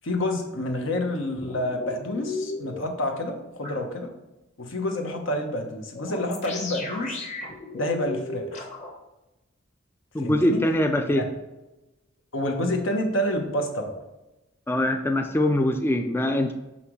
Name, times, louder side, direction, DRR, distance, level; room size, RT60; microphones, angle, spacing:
voice 1, 0.0-4.1 4.6-7.2 7.7-8.7 10.2-10.6 11.0-11.3 12.3-13.9, left 1 dB, 75° left, 3 dB, 1.1 m, -28 dB
sound 1, 1.4-2.8 3.6-3.7 5.9-8.9, left 3 dB, 35° left, 1.2 m, -35 dB
voice 2, 10.1-11.2 14.7-16.5, left 1 dB, 10° left, 5 dB, 0.3 m, -23 dB
6.0 x 5.7 x 3.1 m, 1.0 s
head